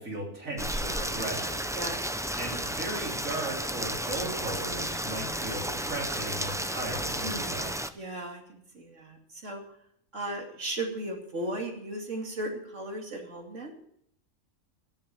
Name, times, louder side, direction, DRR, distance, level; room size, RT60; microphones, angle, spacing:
voice 1, 0.0-1.8 2.4-7.7, right 2 dB, 90° right, -1 dB, 3.8 m, -37 dB
Rain, 0.6-7.9, right 1 dB, 5° right, 0.3 m, -33 dB
voice 2, 7.2-7.7 8.0-9.6 10.1-13.8, right 1 dB, 65° right, 1 dB, 3.0 m, -36 dB
12.0 x 10.5 x 7.0 m, 0.70 s
omnidirectional pair, 1.4 m